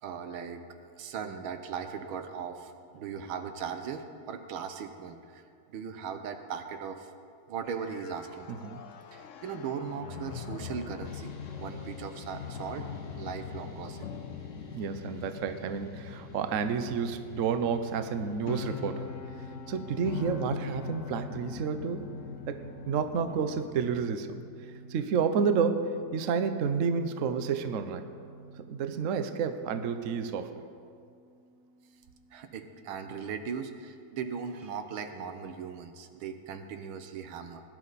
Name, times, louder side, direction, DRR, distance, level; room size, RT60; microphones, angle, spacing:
voice 1, 0.0-0.6 1.0-7.1 7.5-8.7 9.1-12.9 13.2-14.1 32.3-37.6, right 6 dB, 85° right, 8 dB, 1.7 m, -38 dB
sound 1, 7.6-24.1, left 7 dB, 75° left, 0.7 m, -42 dB
voice 2, 8.5-8.8 14.7-19.1 19.7-22.1 22.5-22.6 22.9-24.4 24.9-28.0 28.7-30.5, right 6 dB, 65° right, 9 dB, 0.8 m, -30 dB
sound 2, 11.0-29.4, right 3 dB, 60° left, 2.4 m, -51 dB
sound 3, 18.8-34.7, equal, 45° right, 4.7 m, -55 dB
19.5 x 10.5 x 4.1 m, 2.3 s
omnidirectional pair, 2.2 m